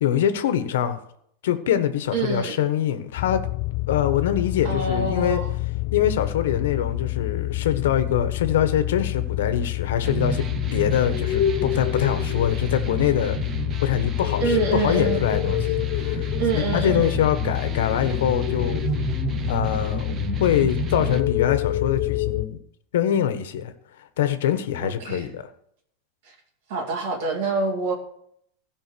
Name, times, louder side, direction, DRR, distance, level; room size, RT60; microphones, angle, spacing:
voice 1, 0.0-1.0 1.4-3.4 3.9-5.4 5.9-10.5 10.7-13.4 13.8-18.9 19.5-20.1 20.4-22.6 22.9-23.7 24.2-25.4, left 10 dB, 80° left, 1.3 m, -24 dB
voice 2, 2.1-2.6 4.6-5.5 14.4-15.2 16.4-17.1 24.8-25.3 26.7-27.9, right 4 dB, 45° right, 2.4 m, -26 dB
sound 1, 3.2-22.5, left 15 dB, 40° left, 0.6 m, -27 dB
sound 2, 10.0-21.2, right 6 dB, 20° right, 0.6 m, -32 dB
16.0 x 5.5 x 6.9 m
supercardioid pair, 180°, 0 cm